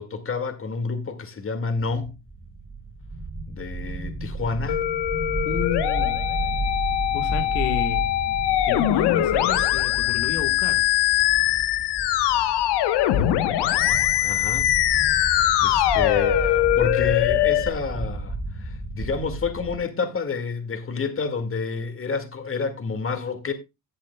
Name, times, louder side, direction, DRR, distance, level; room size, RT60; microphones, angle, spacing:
voice 1, 0.0-2.1 3.5-4.8 13.9-14.7 15.2-23.5, left 4 dB, 25° left, 2.0 m, -29 dB
sound 1, 2.1-19.8, right 2 dB, 5° right, 3.0 m, -33 dB
Musical instrument, 4.7-17.7, left 13 dB, 55° left, 1.1 m, -22 dB
voice 2, 5.4-6.3 7.1-8.1 8.6-10.9, left 8 dB, 85° left, 1.5 m, -31 dB
15.5 x 8.3 x 2.2 m
supercardioid pair, 90°, 49 cm